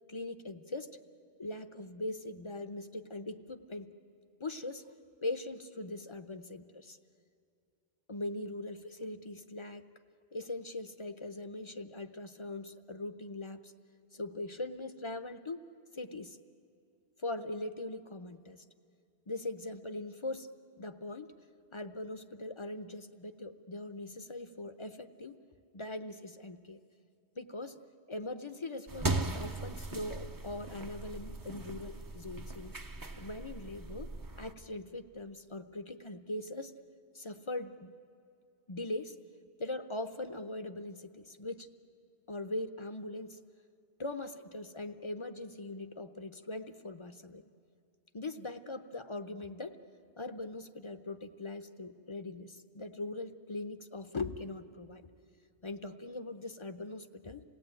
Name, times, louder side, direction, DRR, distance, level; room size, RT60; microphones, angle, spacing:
voice 1, 0.1-0.9 1.4-3.9 4.4-4.9 5.2-7.0 8.1-9.9 10.3-13.7 14.1-15.6 15.9-16.4 17.2-18.6 19.3-20.5 20.8-21.3 21.7-25.4 25.7-26.8 27.4-27.8 28.1-32.8 33.2-34.1 34.4-36.7 37.1-37.9 38.7-39.2 39.6-41.7 42.3-43.4 44.0-47.4 48.1-49.8 50.2-55.1 55.6-57.4, left 2 dB, 35° left, 9 dB, 0.7 m, -41 dB
sound 1, 28.9-34.5, right 2 dB, 25° right, 0.6 m, -38 dB
27.0 x 17.5 x 8.9 m, 2.4 s
omnidirectional pair, 1.0 m